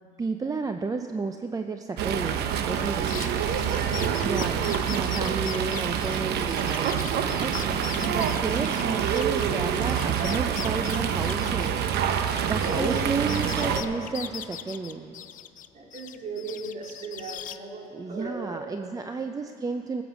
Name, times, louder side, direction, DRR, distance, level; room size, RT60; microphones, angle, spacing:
voice 1, 0.2-3.1 4.2-11.8 12.2-15.2 17.9-20.0, right 4 dB, 20° right, 6 dB, 0.5 m, -32 dB
Fowl, 2.0-13.8, right 8 dB, 75° right, 0.8 m, -26 dB
sound 1, 3.0-9.5 9.7-13.0 13.3-15.7 15.9-17.6, left 11 dB, 50° left, 0.6 m, -40 dB
voice 2, 3.4-4.5 7.5-8.3 12.6-13.1 13.5-13.8 15.7-18.6, right 3 dB, 45° right, -1 dB, 2.8 m, -36 dB
19.0 x 8.0 x 6.3 m, 2.7 s
cardioid pair, 110°, 17 cm